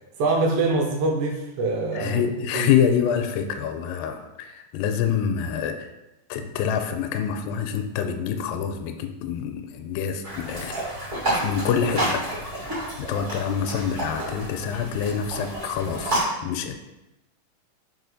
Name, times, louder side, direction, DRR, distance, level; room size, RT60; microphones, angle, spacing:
voice 1, 0.2-2.2 2.5-2.7, right 3 dB, 80° right, 2 dB, 2.5 m, -24 dB
voice 2, 1.9-5.9 6.3-10.8 11.3-16.7, left 8 dB, 85° left, 7 dB, 2.3 m, -26 dB
sound 1, 10.2-16.2, right 1 dB, 25° right, 2.0 m, -30 dB
4.9 x 4.9 x 3.9 m, 0.97 s
omnidirectional pair, 4.0 m